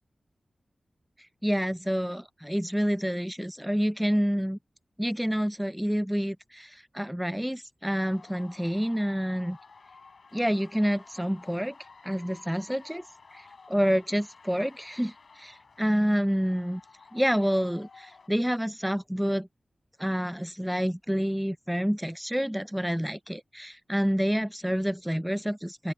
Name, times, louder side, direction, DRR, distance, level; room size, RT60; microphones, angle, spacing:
voice 1, 1.4-4.6 5.0-9.6 10.3-11.8 12.0-13.0 13.3-16.8 17.1-19.5 20.0-25.9, equal, 5° right, 0.3 m, -28 dB
sound 1, 7.8-18.3, left 4 dB, 70° left, 3.3 m, -53 dB
open air
cardioid pair, 45°, 0 cm